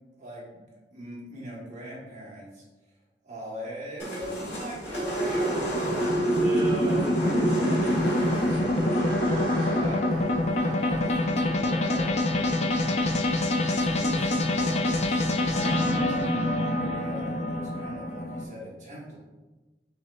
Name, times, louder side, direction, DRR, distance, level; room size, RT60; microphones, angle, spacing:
voice 1, 0.2-0.7 0.9-2.7 3.2-6.3 6.7-7.0 9.8-13.2 13.5-15.2 16.1-19.2, equal, 40° right, -5 dB, 1.2 m, -40 dB
sound 1, 4.0-12.3, right 2 dB, 75° left, 1.3 m, -29 dB
sound 2, 4.2-18.4, left 2 dB, 35° left, 0.4 m, -26 dB
voice 2, 6.3-9.8, equal, 25° right, -5 dB, 0.5 m, -36 dB
5.8 x 3.0 x 2.4 m, 1.2 s
head